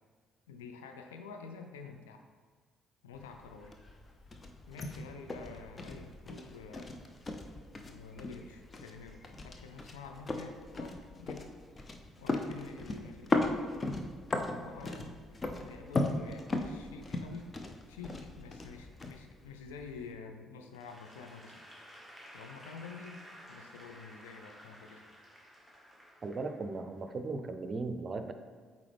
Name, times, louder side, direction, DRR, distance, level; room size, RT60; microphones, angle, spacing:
voice 1, 0.5-2.2 3.0-3.8 4.7-7.0 7.8-11.5 12.2-13.6 14.5-17.5 17.9-21.6 22.3-23.2 23.5-25.1, left 5 dB, 75° left, 5 dB, 0.5 m, -48 dB
sound 1, 3.1-20.1, left 2 dB, 30° left, 0.6 m, -38 dB
Applause / Crowd, 20.7-27.0, equal, 15° left, 1.5 m, -54 dB
voice 2, 26.2-28.3, right 3 dB, 40° right, 8 dB, 0.5 m, -37 dB
8.5 x 4.1 x 3.4 m, 1.5 s
figure-of-eight pair, 45°, 0 cm